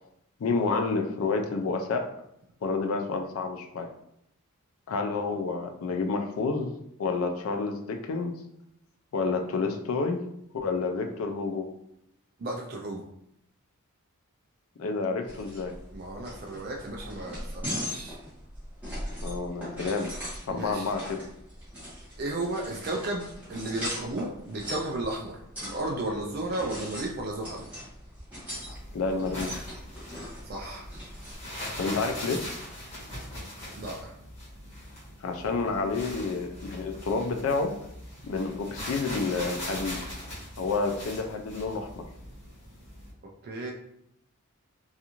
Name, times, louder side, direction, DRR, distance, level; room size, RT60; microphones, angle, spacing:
voice 1, 0.4-2.1 2.6-3.9 4.9-6.7 7.0-8.4 9.1-10.2 10.5-11.7 14.8-15.7 19.2-20.1 20.5-21.2 28.9-29.7 31.8-32.4 35.2-37.7 38.2-40.0 40.6-42.0, left 4 dB, 65° left, 4 dB, 0.4 m, -29 dB
voice 2, 12.4-13.0 15.9-18.2 20.5-20.9 22.2-23.2 23.5-25.4 25.6-27.6 30.4-30.9 33.7-34.1 43.4-43.7, right 2 dB, 45° right, 0 dB, 0.3 m, -34 dB
sound 1, 15.3-31.4, equal, 5° right, 1.0 m, -40 dB
sound 2, 28.5-43.1, left 1 dB, 30° left, 1.2 m, -41 dB
2.5 x 2.4 x 2.9 m, 0.77 s
head